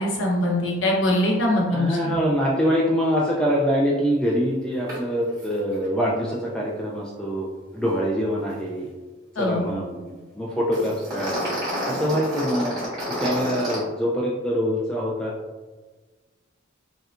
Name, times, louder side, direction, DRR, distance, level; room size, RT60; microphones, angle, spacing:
voice 1, 0.0-2.1 9.4-9.7, left 1 dB, 80° left, -3 dB, 1.0 m, -22 dB
voice 2, 1.7-7.5 7.7-8.9 9.4-11.4 11.8-12.8 13.2-15.3, equal, 5° left, -4 dB, 0.3 m, -24 dB
sound 1, 4.9-5.0 5.3-5.5 5.7-5.8 10.7-13.8, equal, 20° right, 1.4 m, -29 dB
5.4 x 2.2 x 2.5 m, 1.3 s
head